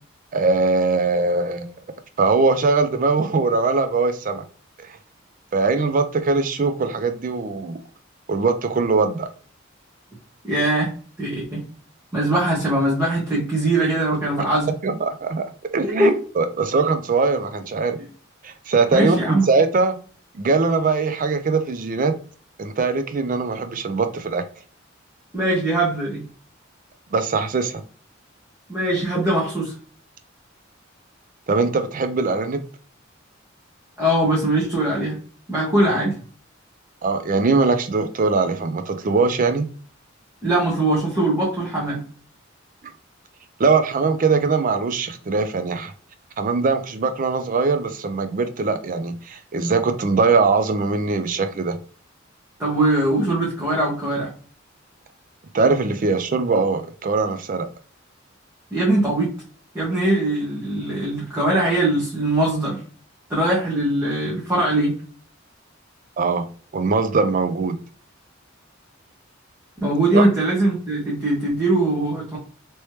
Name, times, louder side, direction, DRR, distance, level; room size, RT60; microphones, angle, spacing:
voice 1, 0.3-1.7 2.2-4.4 4.8-5.0 5.5-7.8 8.3-9.3 14.8-15.4 15.7-18.0 18.4-20.0 20.3-22.2 22.6-24.4 27.1-27.8 31.5-32.6 37.0-39.7 43.6-45.9 46.4-51.8 55.5-57.7 66.2-66.5 66.7-67.8 70.1-70.2, right 4 dB, 45° right, 0.4 m, -21 dB
voice 2, 10.4-11.6 12.1-14.7 16.0-16.1 18.9-19.4 25.3-26.2 28.7-29.7 34.0-35.2 35.5-36.1 40.4-42.0 52.6-54.3 58.7-59.3 59.7-62.8 63.3-65.0 69.8-72.4, right 1 dB, 15° right, 1.2 m, -21 dB
3.2 x 3.0 x 3.1 m
head